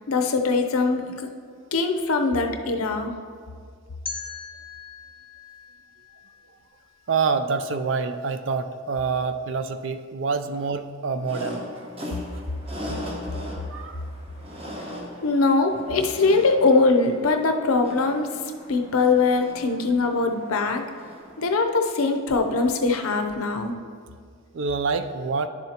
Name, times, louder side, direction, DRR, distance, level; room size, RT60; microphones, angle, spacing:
voice 1, 0.1-1.3 1.7-3.1 9.1-9.2 15.2-18.3 18.7-20.8 21.4-23.7, left 3 dB, 85° left, 5 dB, 0.7 m, -22 dB
sound 1, 4.1-7.0, left 5 dB, 25° left, 0.5 m, -40 dB
voice 2, 7.1-11.9 13.7-14.0 24.5-25.5, right 5 dB, 60° right, 9 dB, 0.4 m, -27 dB
sound 2, 11.2-21.5, equal, 25° right, 1.1 m, -39 dB
11.0 x 7.1 x 2.9 m, 2.1 s
head